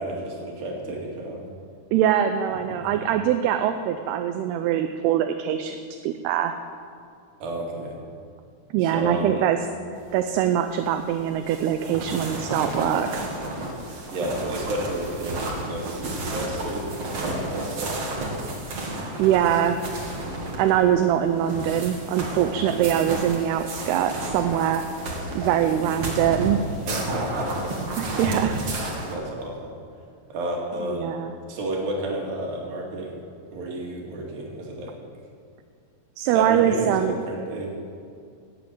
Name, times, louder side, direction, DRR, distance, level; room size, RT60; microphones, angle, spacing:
voice 1, 0.0-1.4 2.9-3.0 7.4-8.0 8.8-9.4 14.1-18.2 19.0-20.0 25.6-26.1 26.9-28.4 28.8-29.8 30.3-31.1 31.5-33.2 33.5-35.0 36.3-37.7, right 1 dB, 65° right, -1 dB, 3.7 m, -32 dB
voice 2, 1.9-6.5 8.7-9.6 10.1-13.3 19.2-19.8 20.6-24.8 25.4-26.6 28.0-28.6 30.9-31.3 36.2-37.2, right 10 dB, 80° right, 7 dB, 2.6 m, -23 dB
sound 1, 10.0-29.1, right 1 dB, 45° right, 2.4 m, -32 dB
14.0 x 8.3 x 8.8 m, 2.3 s
omnidirectional pair, 4.7 m